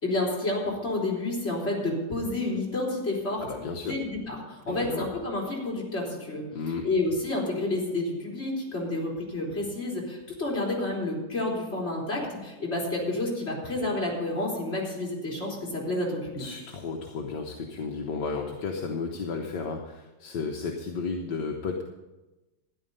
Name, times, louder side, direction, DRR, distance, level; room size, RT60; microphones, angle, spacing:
voice 1, 0.0-3.4 3.8-6.4 6.8-16.4, left 2 dB, 35° left, -3 dB, 3.7 m, -30 dB
voice 2, 3.4-4.0 4.7-5.1 6.5-6.9 16.4-21.8, left 4 dB, 70° left, 2 dB, 1.6 m, -33 dB
13.0 x 10.5 x 5.4 m, 1.1 s
omnidirectional pair, 2.0 m